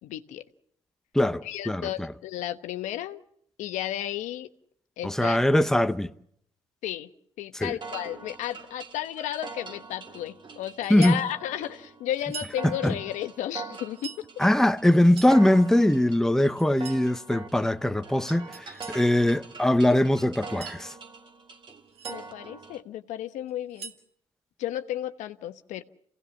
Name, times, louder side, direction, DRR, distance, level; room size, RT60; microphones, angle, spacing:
voice 1, 0.0-0.4 1.4-3.2 3.6-4.5 5.0-5.4 6.8-7.1 7.4-14.3 22.1-23.9 24.6-25.8, left 12 dB, 80° left, 1.1 m, -33 dB
voice 2, 1.1-2.1 5.0-6.1 7.5-7.8 10.9-11.2 12.6-13.0 14.4-20.9, left 1 dB, 5° left, 1.0 m, -22 dB
sound 1, 7.8-22.8, right 4 dB, 40° right, 2.1 m, -43 dB
sound 2, 10.8-11.3 12.2-12.6 13.7-14.2 14.9-15.4 16.6-17.1 18.5-19.0 20.3-20.8 21.7-22.2 23.5-24.1, right 6 dB, 55° right, 2.9 m, -42 dB
27.5 x 17.5 x 7.1 m
supercardioid pair, 70°, 12 cm